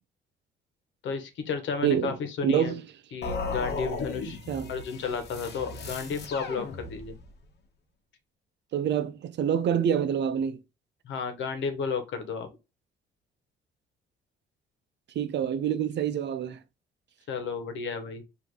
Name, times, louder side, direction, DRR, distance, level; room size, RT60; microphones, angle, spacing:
voice 1, 1.0-2.8 3.1-4.4 4.7-7.2 11.0-12.5 17.3-18.2, left 5 dB, 75° left, 1.2 m, -32 dB
voice 2, 1.8-2.1 2.4-2.8 4.5-4.7 8.7-10.6 15.2-16.6, right 8 dB, 60° right, 0.6 m, -26 dB
sound 1, 3.2-7.3, left 4 dB, 55° left, 1.1 m, -36 dB
5.1 x 2.8 x 3.0 m
cardioid pair, 90°, 20 cm